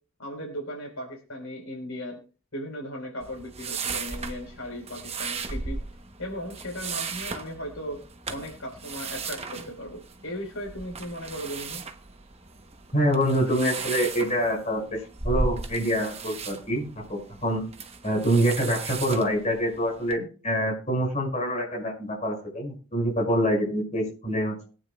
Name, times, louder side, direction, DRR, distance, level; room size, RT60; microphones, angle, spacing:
voice 1, 0.2-2.2 2.5-5.8 6.2-8.0 8.3-11.8, equal, 75° left, 2 dB, 4.5 m, -37 dB
sound 1, 3.2-20.2, right 4 dB, 30° right, 1.0 m, -36 dB
voice 2, 12.9-17.7 18.0-24.6, equal, 35° left, -2 dB, 5.9 m, -26 dB
22.5 x 9.5 x 2.4 m, 0.38 s
head